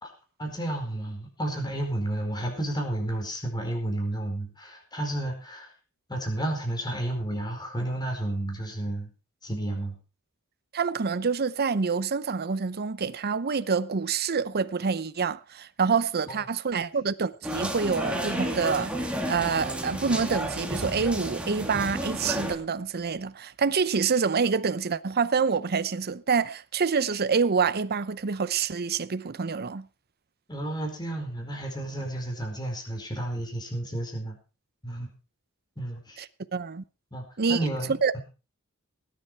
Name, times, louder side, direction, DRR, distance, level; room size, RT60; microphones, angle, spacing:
voice 1, 0.4-5.7 6.1-9.1 9.4-9.9 16.3-16.4 30.5-34.4 34.8-35.1 35.8-36.2 37.1-38.2, right 1 dB, 20° left, 4.6 m, -32 dB
voice 2, 10.7-19.0 19.3-29.9 36.5-36.8 37.4-37.6 38.0-38.1, right 5 dB, 45° right, 0.7 m, -27 dB
sound 1, 17.4-22.6, right 1 dB, 5° right, 2.4 m, -31 dB
18.0 x 10.0 x 4.6 m
head